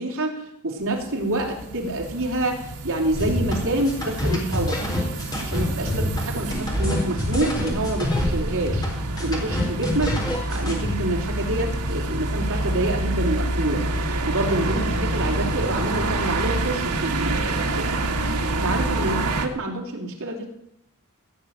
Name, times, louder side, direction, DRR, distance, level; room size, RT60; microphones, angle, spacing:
voice 1, 0.0-4.8 5.4-8.9 9.2-10.2 10.5-13.9 14.2-18.1 18.6-20.5, right 2 dB, 65° right, 0 dB, 3.4 m, -27 dB
sound 1, 0.8-19.5, right 2 dB, 85° right, 1.6 m, -27 dB
sound 2, 3.1-10.9, left 1 dB, 20° left, 4.1 m, -26 dB
16.0 x 6.6 x 8.8 m, 0.77 s
head